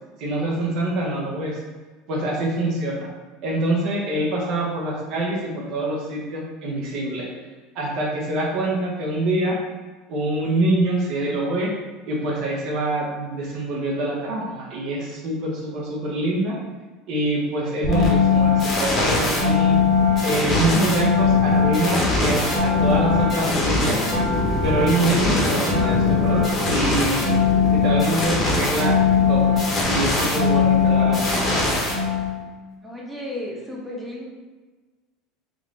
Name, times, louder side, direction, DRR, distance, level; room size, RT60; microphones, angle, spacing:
voice 1, 0.2-1.6 2.1-3.1 3.4-7.3 7.7-9.6 10.1-11.7 12.1-16.5 17.1-19.8 20.2-24.0 24.6-27.3 27.7-28.9 29.3-29.5 29.9-31.7, right 1 dB, 50° right, -3 dB, 0.8 m, -25 dB
sound 1, 17.8-32.5, left 4 dB, 25° left, 1.0 m, -20 dB
voice 2, 32.8-34.3, left 1 dB, 5° right, -3 dB, 0.7 m, -33 dB
3.7 x 3.1 x 3.7 m, 1.3 s
cardioid pair, 160°, 0 cm